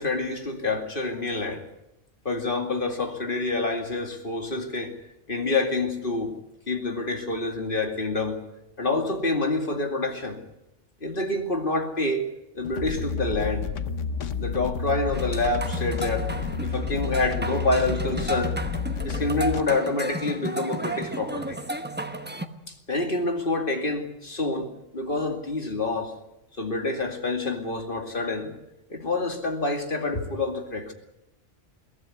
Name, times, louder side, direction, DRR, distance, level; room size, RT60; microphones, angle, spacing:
voice 1, 0.0-1.6 2.2-5.0 5.3-6.3 6.7-8.4 8.8-10.4 11.0-12.2 12.5-13.7 14.4-16.3 16.6-18.6 19.0-21.6 22.7-24.7 24.9-26.1 26.6-28.5 28.9-30.9, left 2 dB, 45° left, 4 dB, 2.6 m, -27 dB
sound 1, 12.6-19.6, left 5 dB, 85° left, 1.3 m, -30 dB
sound 2, 15.1-22.5, right 1 dB, 10° right, 1.1 m, -33 dB
22.5 x 16.0 x 9.4 m, 0.90 s
omnidirectional pair, 1.2 m